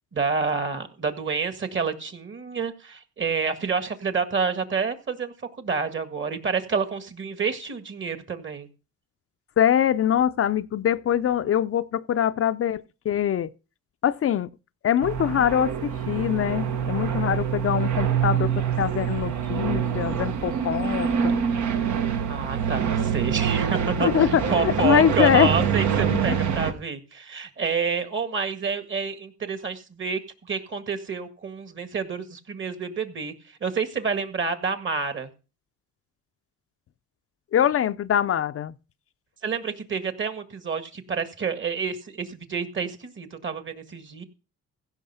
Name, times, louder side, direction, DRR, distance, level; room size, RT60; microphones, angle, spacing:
voice 1, 0.1-8.7 17.0-17.4 22.3-30.2 30.5-33.3 33.6-35.3 39.4-44.2, right 5 dB, 40° right, 1.9 m, -28 dB
voice 2, 9.6-13.5 14.0-14.5 14.8-18.5 18.8-21.3 24.0-25.5 26.1-26.4 37.5-38.7, left 10 dB, 50° left, 0.5 m, -23 dB
sound 1, 15.0-26.7, right 8 dB, 70° right, 1.4 m, -25 dB
15.5 x 5.8 x 5.6 m
cardioid pair, 90°, 30 cm